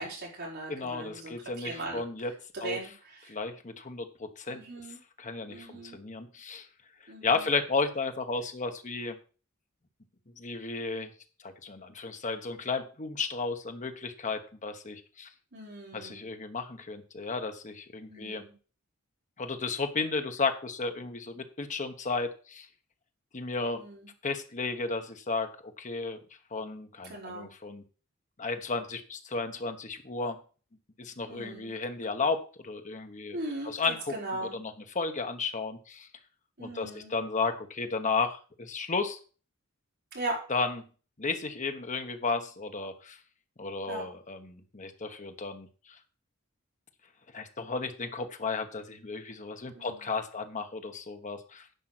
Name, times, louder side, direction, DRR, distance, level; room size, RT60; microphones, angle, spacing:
voice 1, 0.0-2.0 2.5-3.3 4.5-5.0 5.5-6.0 7.1-7.6 15.5-16.3 18.1-18.5 23.7-24.1 27.1-27.5 31.3-31.7 33.3-34.6 36.6-37.1 40.1-40.4 43.9-44.0 49.7-50.1, right 2 dB, 50° right, -3 dB, 5.4 m, -39 dB
voice 2, 0.7-2.3 2.6-2.8 3.3-4.6 5.2-6.7 7.2-9.2 10.4-11.1 11.4-15.3 15.9-18.4 19.4-22.7 23.3-23.8 24.2-26.2 26.5-27.8 28.4-30.4 31.0-33.4 33.6-34.1 34.5-36.1 36.6-39.2 40.5-40.8 41.2-43.2 43.6-45.7 47.3-51.7, left 4 dB, 35° left, 7 dB, 1.1 m, -33 dB
10.5 x 5.5 x 6.1 m, 0.38 s
head